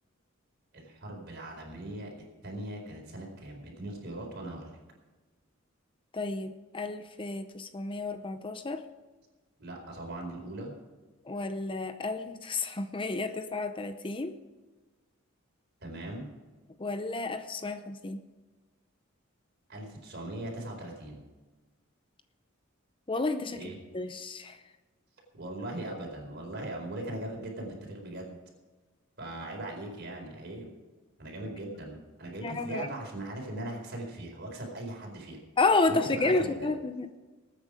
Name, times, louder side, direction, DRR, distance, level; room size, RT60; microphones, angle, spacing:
voice 1, 0.7-2.1 2.4-4.8 9.6-10.7 15.8-16.3 19.7-21.2 23.5-23.8 25.3-28.4 29.2-30.7 31.2-35.4 35.9-36.7, right 1 dB, 55° right, 0 dB, 4.4 m, -39 dB
voice 2, 6.1-8.8 11.3-14.3 16.8-18.2 23.1-24.6 32.4-32.9 35.6-37.2, left 3 dB, 25° left, 9 dB, 0.6 m, -31 dB
20.5 x 9.2 x 5.0 m, 1.3 s
head